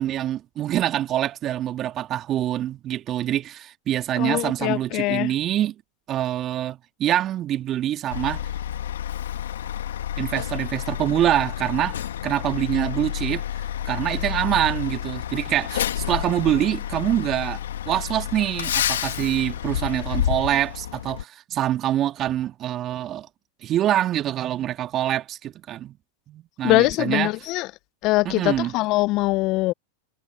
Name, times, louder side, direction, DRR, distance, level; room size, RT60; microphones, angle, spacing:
voice 1, 0.0-5.7 6.1-8.5 10.2-13.4 13.8-23.3 23.6-26.0 26.3-27.3 28.2-28.7, right 12 dB, 35° right, 2.3 m, -25 dB
voice 2, 4.2-5.3 26.6-27.7 28.0-29.7, left 21 dB, 45° left, 0.7 m, -22 dB
Truck, 8.1-21.2, left 11 dB, 75° left, 1.8 m, -29 dB
hypercardioid pair, 95°, 0 cm